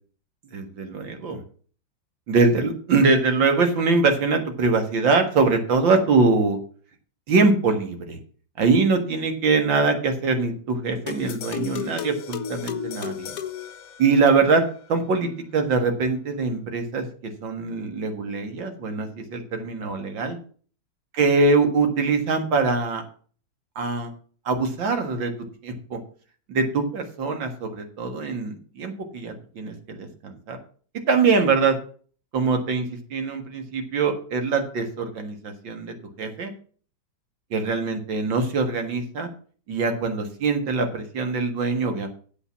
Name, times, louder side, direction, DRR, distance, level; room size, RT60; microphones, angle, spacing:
voice 1, 0.5-1.4 2.3-6.6 7.3-8.2 8.6-13.3 14.0-14.6 14.9-20.4 21.2-23.0 23.8-24.1 24.5-25.3 25.6-26.0 26.5-30.6 31.1-31.8 32.3-36.5 37.5-39.3 39.7-42.1, right 4 dB, 80° right, 6 dB, 2.5 m, -23 dB
sound 1, 11.1-14.5, left 7 dB, 60° left, 1.1 m, -33 dB
8.6 x 8.0 x 5.8 m, 0.43 s
omnidirectional pair, 2.0 m